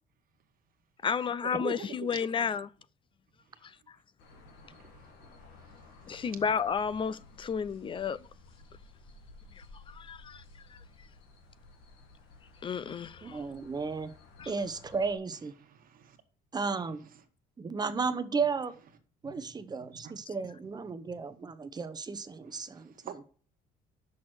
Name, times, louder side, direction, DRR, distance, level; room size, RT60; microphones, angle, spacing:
voice 1, 1.0-2.7 3.6-4.0 6.1-8.3 9.5-10.4 10.7-10.8 12.6-13.5 14.4-14.5, left 6 dB, 30° left, 0.4 m, -32 dB
voice 2, 1.7-2.1 4.6-5.1 6.1-6.2 15.6-16.2 19.2-20.1 21.3-21.4 22.4-23.2, right 8 dB, 55° right, 1.4 m, -49 dB
sound 1, 4.2-15.2, left 3 dB, 90° left, 2.1 m, -55 dB
voice 3, 13.2-14.1 14.5-15.5 16.5-17.0 17.6-18.7 19.2-22.9, right 5 dB, 25° right, 0.8 m, -34 dB
6.2 x 5.9 x 6.3 m
cardioid pair, 110°, 17 cm